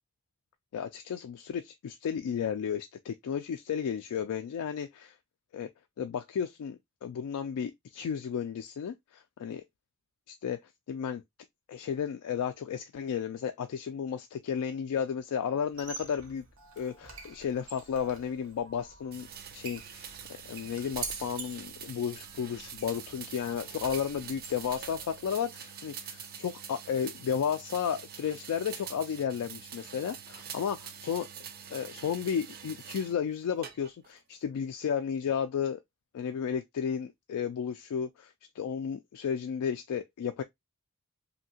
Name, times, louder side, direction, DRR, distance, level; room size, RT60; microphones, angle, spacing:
voice 1, 0.7-5.1 5.5-5.7 6.0-9.6 10.3-10.6 10.9-11.2 11.7-16.4 16.8-20.1 20.4-31.3 31.7-35.8 36.1-40.4, left 7 dB, 85° left, 0.3 m, -33 dB
Squeak, 15.7-25.3, right 4 dB, 65° right, 0.9 m, -46 dB
sound 1, 19.1-33.2 33.6-34.2, right 8 dB, 40° right, 0.4 m, -45 dB
2.8 x 2.6 x 2.7 m
head